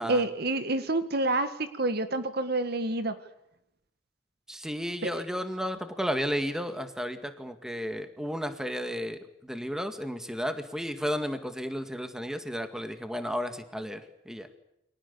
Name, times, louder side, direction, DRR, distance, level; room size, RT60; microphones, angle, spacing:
voice 1, 0.0-3.2 5.0-5.2, right 2 dB, 55° right, 10 dB, 2.0 m, -28 dB
voice 2, 4.5-14.5, equal, 5° right, 8 dB, 2.1 m, -33 dB
29.5 x 24.0 x 7.1 m, 0.79 s
head